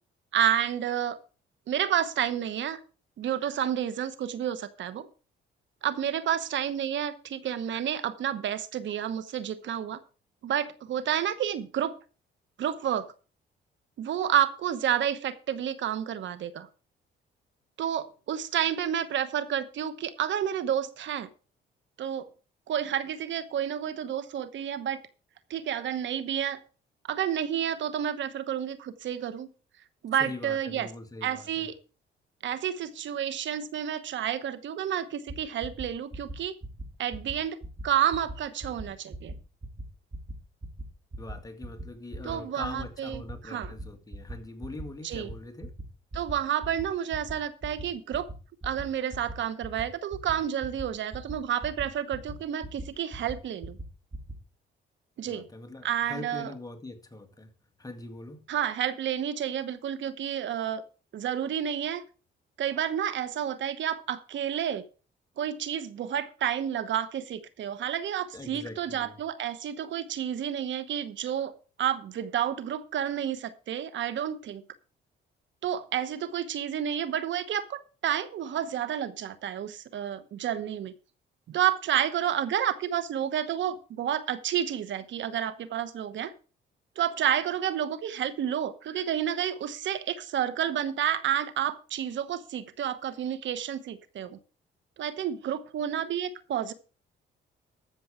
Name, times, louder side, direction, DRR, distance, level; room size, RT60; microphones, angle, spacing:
voice 1, 0.3-1.2 1.7-2.8 3.2-5.1 5.8-10.0 10.4-11.9 12.6-13.1 14.0-16.7 17.8-21.3 22.0-22.3 22.7-25.0 25.5-26.6 27.1-29.5 30.0-30.9 31.2-31.7 32.4-36.5 37.0-37.6 37.8-39.3 42.2-43.7 45.0-45.3 46.1-48.3 48.6-53.8 55.2-55.4 55.8-56.5 58.5-60.8 61.1-62.0 62.6-64.8 65.4-71.5 71.8-74.6 75.6-80.9 81.5-86.3 87.0-94.4 95.0-96.7, right 10 dB, 70° right, 1.1 m, -30 dB
voice 2, 30.2-31.7 41.2-45.7 55.3-57.5 57.8-58.4 68.3-69.2, left 2 dB, 20° left, 2.0 m, -42 dB
sound 1, 35.3-35.4 35.6-35.9 36.1-36.4 36.6-36.8 37.1-37.3 37.6-37.8 38.1-38.3 38.6-38.8 39.1-39.3 39.6-39.8 40.1-40.3 40.6-40.8 41.1-41.3 41.6-41.8 42.1-42.3 42.6-42.8 43.1-43.3 43.6-43.8 44.1-44.3 44.6-44.8 45.1-45.3 45.6-45.8 46.1-46.3 46.6-46.8 47.1-47.3 47.6-47.8 48.1-48.3 48.6-48.8 49.1-49.3 49.6-49.8 50.1-50.3 50.6-50.8 51.1-51.3 51.6-51.8 52.1-52.3 52.6-52.8 53.1-53.3 53.6-53.8 54.1-54.3, right 2 dB, 20° right, 3.4 m, -38 dB
13.5 x 7.0 x 4.9 m
cardioid pair, 90°, 20 cm